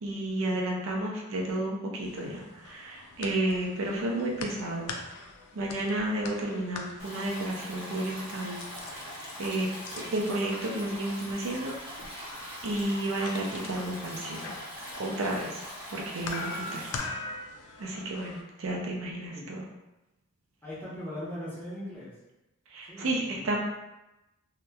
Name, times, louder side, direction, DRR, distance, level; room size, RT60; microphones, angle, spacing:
voice 1, 0.0-4.9 5.5-8.6 8.9-9.0 9.4-9.7 10.0-11.7 12.1-12.3 12.6-14.5 15.0-15.6 15.9-16.9 17.8-19.7 22.7-23.6, right 1 dB, 65° right, -1 dB, 0.4 m, -32 dB
sound 1, 2.0-18.4, left 3 dB, 85° left, 0.3 m, -43 dB
Stream, 7.0-17.0, equal, 25° right, 0.7 m, -42 dB
voice 2, 20.6-22.1 22.9-23.5, left 1 dB, 10° left, -9 dB, 0.7 m, -39 dB
2.8 x 2.1 x 2.2 m, 0.97 s
head